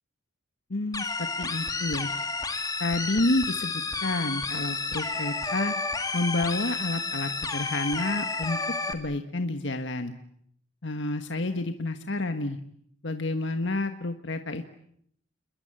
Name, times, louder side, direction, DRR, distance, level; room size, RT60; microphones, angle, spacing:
voice 1, 0.7-2.1 2.8-3.7 4.0-5.7 6.1-8.6 8.9-10.1 10.8-12.6 13.0-14.6, left 2 dB, 65° left, 7 dB, 1.5 m, -29 dB
sound 1, 0.9-8.9, left 3 dB, 20° left, 2.4 m, -31 dB
29.0 x 22.5 x 8.9 m, 0.69 s
head